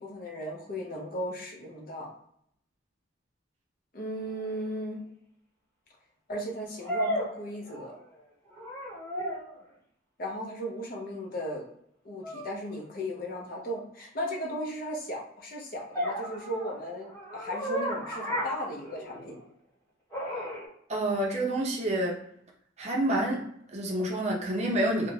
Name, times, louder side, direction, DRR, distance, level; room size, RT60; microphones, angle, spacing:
voice 1, 0.0-2.1 3.9-5.0 6.3-8.0 10.2-11.7 12.0-19.3, equal, 45° left, 0 dB, 0.5 m, -36 dB
sound 1, 4.4-4.5 6.8-8.1 8.5-9.6 12.2-12.5 15.9-19.4 20.1-20.7, equal, 10° left, 1.2 m, -34 dB
voice 2, 20.9-22.2 22.8-23.4 23.7-25.1, right 1 dB, 35° right, -2 dB, 0.5 m, -28 dB
2.5 x 2.1 x 3.1 m, 0.70 s
head